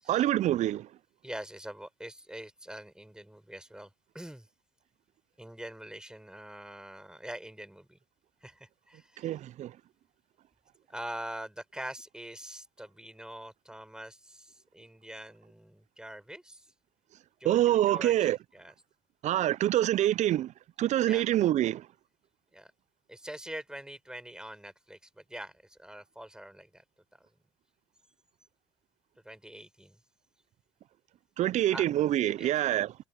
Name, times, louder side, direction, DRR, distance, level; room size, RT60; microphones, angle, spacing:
voice 1, 0.1-0.9 9.2-9.8 17.4-18.4 19.2-21.9 31.4-32.9, right 13 dB, 55° right, 0.6 m, -26 dB
voice 2, 1.2-3.9 4.1-4.5 5.4-8.0 8.4-9.3 10.9-16.7 17.4-18.1 18.5-18.7 21.1-21.2 22.5-22.7 23.1-26.8 29.2-30.0 31.7-31.9 32.4-32.6, right 1 dB, 5° right, 5.3 m, -44 dB
hypercardioid pair, 60°, 14 cm